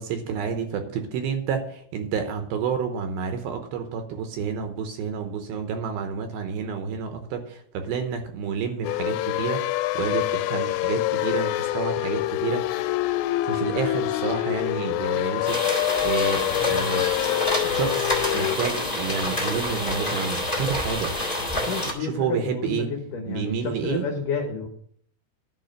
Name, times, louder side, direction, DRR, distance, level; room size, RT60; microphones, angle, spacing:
voice 1, 0.0-12.8 13.4-17.1 17.6-21.2 21.8-22.9 23.3-24.1, right 6 dB, 75° right, 6 dB, 2.6 m, -30 dB
sound 1, 8.8-18.6, left 16 dB, 85° left, 2.7 m, -26 dB
sound 2, 15.4-21.9, left 1 dB, 25° left, 1.1 m, -27 dB
sound 3, 16.5-21.9, left 3 dB, 50° left, 2.8 m, -40 dB
voice 2, 21.7-24.7, left 5 dB, 70° left, 3 dB, 2.1 m, -30 dB
11.0 x 4.9 x 7.8 m, 0.62 s
omnidirectional pair, 4.9 m